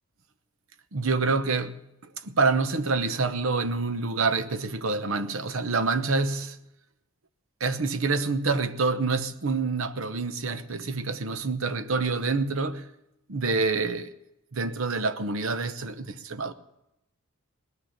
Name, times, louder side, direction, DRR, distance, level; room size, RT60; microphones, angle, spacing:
voice 1, 0.9-1.8 2.2-6.6 7.6-12.9 13.3-14.1 14.5-16.5, right 3 dB, 65° right, 0.9 m, -27 dB
19.5 x 6.5 x 8.4 m
head